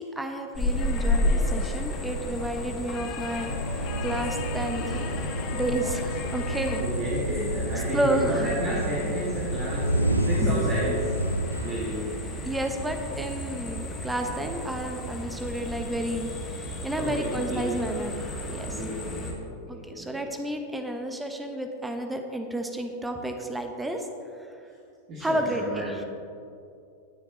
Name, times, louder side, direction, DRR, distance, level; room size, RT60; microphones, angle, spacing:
voice 1, 0.0-5.0 5.5-6.8 7.9-8.4 12.5-18.8 19.9-24.1 25.2-26.0, right 1 dB, 10° right, 5 dB, 1.0 m, -31 dB
sound 1, 0.5-19.3, left 1 dB, 20° left, 2.0 m, -33 dB
sound 2, 0.8-6.8, left 6 dB, 40° left, 0.8 m, -38 dB
sound 3, 3.5-12.6, right 1 dB, 85° right, 0.5 m, -30 dB
voice 2, 6.8-11.1 11.6-12.1 17.0-17.7 18.5-20.2 25.1-25.9, equal, 35° right, -6 dB, 2.0 m, -31 dB
18.5 x 7.0 x 3.1 m, 2.6 s
figure-of-eight pair, 90°, 0 cm